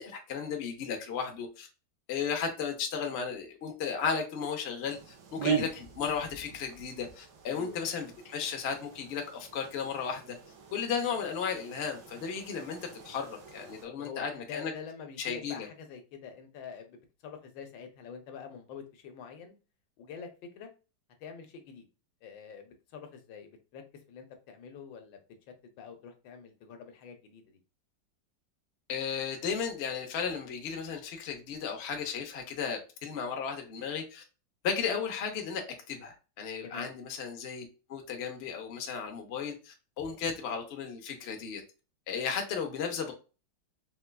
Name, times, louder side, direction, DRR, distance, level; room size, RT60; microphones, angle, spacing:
voice 1, 0.0-1.7 2.1-10.4 10.7-14.7 15.2-15.7 28.9-34.2 34.6-35.6 35.9-41.6 42.1-43.1, left 6 dB, 60° left, 3 dB, 0.6 m, -35 dB
sound 1, 4.8-13.9, right 7 dB, 70° right, 1.2 m, -40 dB
voice 2, 7.5-7.9 10.8-10.9 13.8-19.5 20.0-20.3 20.5-20.7 21.2-21.8 22.2-23.8 24.1-25.2 25.6-27.6 36.6-36.9, left 6 dB, 80° left, 6 dB, 1.4 m, -46 dB
4.1 x 2.3 x 2.2 m, 0.32 s
omnidirectional pair, 2.0 m